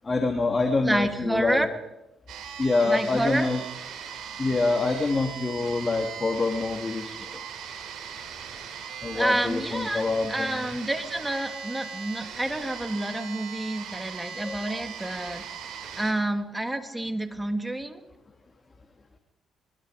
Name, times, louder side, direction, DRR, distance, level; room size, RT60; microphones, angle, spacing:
voice 1, 0.0-1.7 2.6-3.6 4.4-7.3 9.0-10.6 14.4-14.6, left 3 dB, 30° left, 4 dB, 2.7 m, -26 dB
voice 2, 0.8-1.7 2.9-3.5 9.1-15.4 16.0-18.0, right 1 dB, 10° right, 6 dB, 2.8 m, -29 dB
sound 1, 2.3-16.1, right 7 dB, 75° right, 5.1 m, -39 dB
24.5 x 21.5 x 5.1 m, 0.93 s
supercardioid pair, 65°, 0 cm